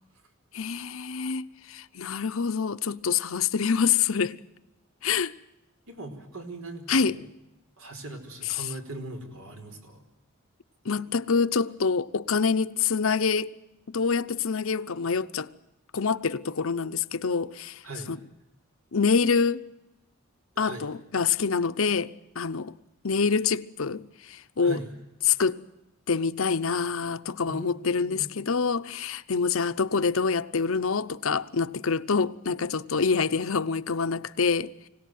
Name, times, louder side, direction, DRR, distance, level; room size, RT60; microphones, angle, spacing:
voice 1, 0.5-4.4 5.0-5.3 6.9-7.2 10.8-13.5 13.9-15.5 15.9-17.8 18.1-18.2 18.9-19.6 20.6-22.7 23.0-24.8 25.2-25.6 26.1-34.7, left 5 dB, 75° left, 0.8 m, -26 dB
voice 2, 5.9-7.3 7.8-10.0 17.8-18.1 20.5-20.9 24.6-24.9 27.5-28.3, right 2 dB, 80° right, 4.8 m, -40 dB
25.5 x 18.0 x 9.4 m
head